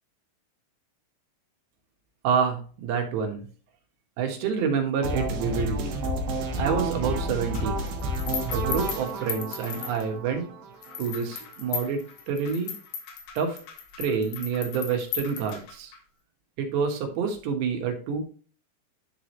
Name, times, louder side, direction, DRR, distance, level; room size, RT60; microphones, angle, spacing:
voice 1, 2.2-3.5 4.2-6.0 6.6-7.9 8.5-10.5 11.0-12.7 13.4-13.6 14.0-15.9 16.6-18.2, right 6 dB, 80° right, 3 dB, 3.6 m, -28 dB
sound 1, 5.0-11.0, right 1 dB, 60° right, 2.4 m, -30 dB
sound 2, 7.5-10.4 10.8-16.0, left 7 dB, 75° left, 3.4 m, -37 dB
11.0 x 4.9 x 3.1 m, 0.40 s
omnidirectional pair, 5.0 m